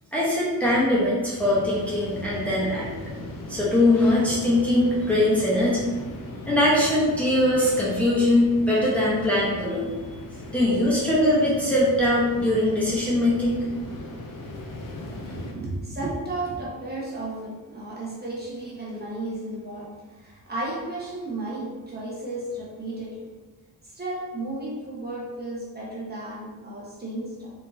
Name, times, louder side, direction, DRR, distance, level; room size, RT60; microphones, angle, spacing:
voice 1, 0.1-2.9 3.5-5.9 6.5-9.9 10.5-13.6, left 1 dB, 5° left, -7 dB, 1.0 m, -21 dB
sound 1, 1.4-15.5, left 1 dB, 60° left, 0.8 m, -38 dB
voice 2, 15.2-23.3 23.8-27.5, right 2 dB, 25° right, -6 dB, 1.2 m, -34 dB
3.9 x 3.4 x 2.8 m, 1.2 s
cardioid pair, 105°, 37 cm